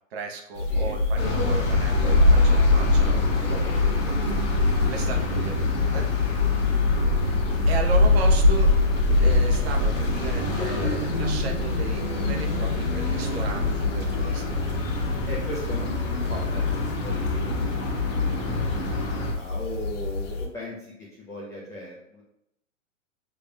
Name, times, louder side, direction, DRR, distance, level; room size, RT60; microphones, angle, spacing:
voice 1, 0.1-4.1 4.8-6.0 7.2-8.7 9.2-14.6, right 4 dB, 50° right, 2 dB, 1.0 m, -35 dB
sound 1, 0.5-20.5, left 2 dB, 65° left, 1.4 m, -24 dB
sound 2, 1.2-19.3, left 4 dB, 40° left, 1.5 m, -27 dB
voice 2, 6.8-7.6 15.2-22.2, left 1 dB, 10° left, -6 dB, 0.4 m, -39 dB
6.7 x 3.4 x 2.3 m, 0.78 s
hypercardioid pair, 135°, 39 cm